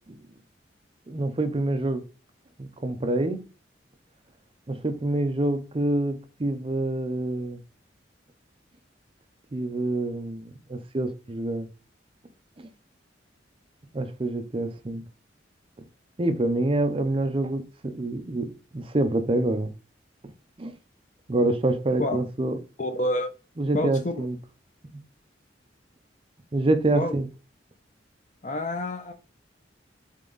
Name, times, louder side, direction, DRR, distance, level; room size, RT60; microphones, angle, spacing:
voice 1, 1.1-2.0 2.6-3.4 4.7-7.6 9.5-11.7 12.6-12.7 13.9-15.0 16.2-19.7 20.6-20.7 21.3-22.6 23.6-24.4 26.5-27.3, right 2 dB, 30° right, 0.6 m, -26 dB
voice 2, 22.8-23.3 23.7-24.3 26.9-27.1 28.4-29.1, left 1 dB, 40° left, 0.9 m, -28 dB
7.3 x 3.4 x 3.9 m
head